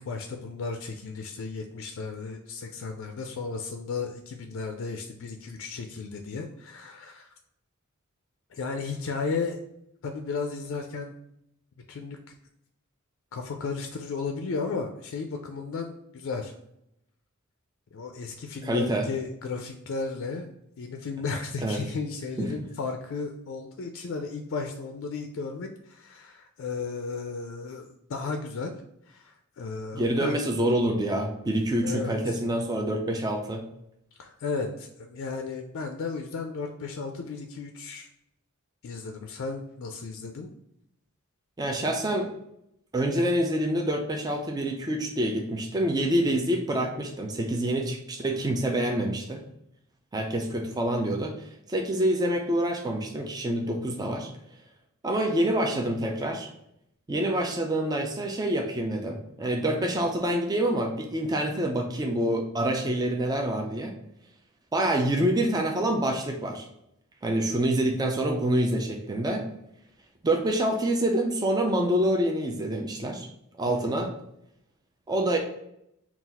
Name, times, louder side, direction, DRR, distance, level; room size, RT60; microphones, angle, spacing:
voice 1, 0.0-7.3 8.5-9.6 10.0-11.1 11.9-12.3 13.3-16.5 17.9-20.5 20.8-28.7 29.1-30.4 31.8-32.4 34.2-38.1 38.8-40.5 73.7-74.0, left 4 dB, 60° left, 4 dB, 0.4 m, -34 dB
voice 2, 18.6-19.0 21.6-21.8 22.4-22.5 29.9-33.6 41.6-42.3 42.9-49.4 50.1-51.3 51.7-54.3 55.0-56.5 57.1-63.9 64.7-66.7 67.2-69.5 70.2-73.3 73.6-74.1 75.1-75.4, right 1 dB, 20° right, 2 dB, 0.4 m, -26 dB
3.9 x 2.4 x 4.0 m, 0.79 s
head